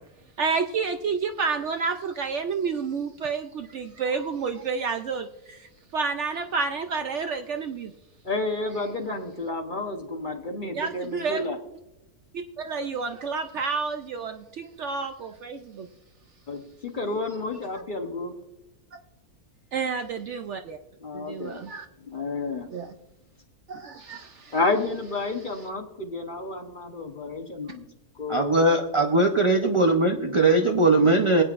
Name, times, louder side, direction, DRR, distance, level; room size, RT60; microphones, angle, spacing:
voice 1, 0.4-7.9 10.7-11.5 12.6-15.9 19.7-20.8 21.1-21.9 22.7-22.9 23.7-24.5, right 5 dB, 65° right, 6 dB, 0.7 m, -30 dB
voice 2, 8.2-11.6 16.5-18.3 21.0-21.6 22.0-22.7 24.5-27.9 28.1-28.7, left 3 dB, 40° left, 4 dB, 0.9 m, -30 dB
voice 3, 28.3-31.4, right 2 dB, 40° right, 3 dB, 0.4 m, -20 dB
23.0 x 8.7 x 2.5 m, 0.95 s
omnidirectional pair, 1.6 m